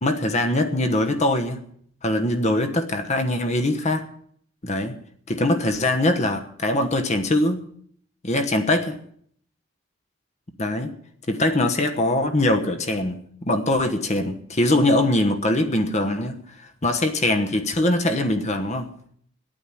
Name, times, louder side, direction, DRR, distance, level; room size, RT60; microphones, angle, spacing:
voice 1, 0.0-1.6 2.0-4.1 4.6-5.0 5.3-7.7 8.2-9.0 10.6-10.9 11.3-18.9, left 1 dB, 35° left, 1.2 m, -22 dB
10.5 x 9.1 x 9.9 m
head